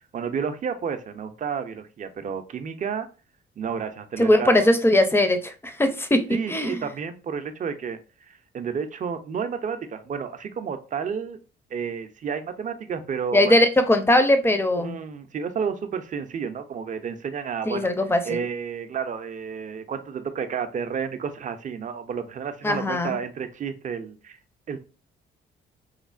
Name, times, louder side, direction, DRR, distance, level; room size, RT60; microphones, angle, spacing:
voice 1, 0.1-3.1 3.6-4.7 6.3-8.0 8.3-11.4 11.7-13.6 14.8-17.9 18.2-24.4 24.7-24.8, right 6 dB, 40° right, 0.5 m, -31 dB
voice 2, 4.2-6.8 13.3-15.0 17.7-18.4 22.6-23.2, left 1 dB, 10° left, 0.5 m, -20 dB
3.1 x 2.0 x 2.4 m
cardioid pair, 90°, 20 cm